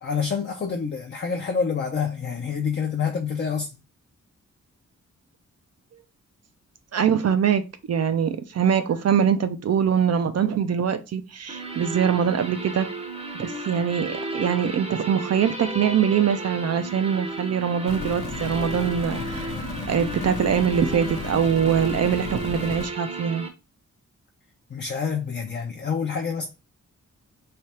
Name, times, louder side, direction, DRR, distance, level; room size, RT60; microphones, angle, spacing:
voice 1, 0.0-3.7 24.7-26.5, left 6 dB, 35° left, 0.5 m, -27 dB
voice 2, 6.9-7.6 7.9-12.9 13.4-19.5 19.9-23.5, right 8 dB, 55° right, 0.4 m, -23 dB
sound 1, 11.5-23.5, right 2 dB, 20° right, 0.7 m, -34 dB
sound 2, 17.9-22.9, left 4 dB, 80° left, 0.7 m, -34 dB
3.3 x 2.3 x 4.2 m
wide cardioid pair, 110°, 30 cm